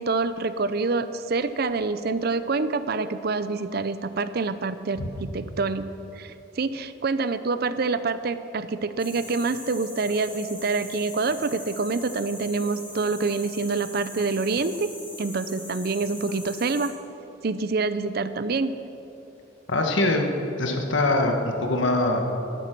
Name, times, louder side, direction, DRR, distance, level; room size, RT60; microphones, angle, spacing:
voice 1, 0.0-5.9 6.1-14.9 15.2-16.9 17.4-18.8, right 3 dB, 50° right, 13 dB, 0.5 m, -26 dB
sound 1, 9.0-16.9, left 1 dB, 10° left, 2.1 m, -41 dB
voice 2, 19.7-20.3 20.6-22.3, left 2 dB, 75° left, 3 dB, 1.6 m, -23 dB
13.5 x 12.0 x 6.0 m, 3.0 s
head